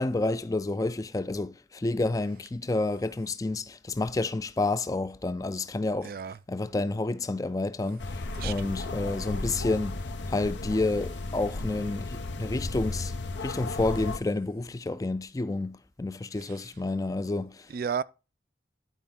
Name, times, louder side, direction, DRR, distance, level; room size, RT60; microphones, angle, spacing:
voice 1, 0.0-6.1 6.5-8.1 8.4-10.0 10.3-13.1 13.4-17.7, left 2 dB, 20° left, 0.4 m, -29 dB
voice 2, 6.0-6.4 8.3-8.7 16.4-16.6 17.7-18.0, right 7 dB, 55° right, 0.3 m, -33 dB
sound 1, 8.0-14.2, left 2 dB, 90° left, 0.8 m, -34 dB
11.0 x 4.6 x 3.6 m
head